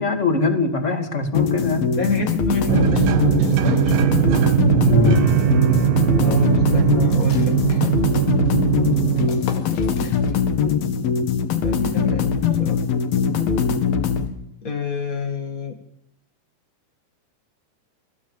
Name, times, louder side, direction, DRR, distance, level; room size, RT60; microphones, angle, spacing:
voice 1, 0.0-1.9 4.9-5.2, left 3 dB, 20° left, 4 dB, 2.1 m, -21 dB
sound 1, 1.4-14.3, left 6 dB, 65° left, 3.7 m, -22 dB
voice 2, 2.0-4.3 6.2-7.8 9.1-10.3 11.6-12.8 14.6-15.7, left 5 dB, 45° left, 2 dB, 1.1 m, -29 dB
sound 2, 2.7-9.3, right 12 dB, 70° right, 2.5 m, -19 dB
sound 3, 7.1-10.7 11.0-11.1 11.5-12.0, left 6 dB, 80° left, 4.3 m, -40 dB
29.5 x 16.0 x 7.2 m, 0.78 s
omnidirectional pair, 4.7 m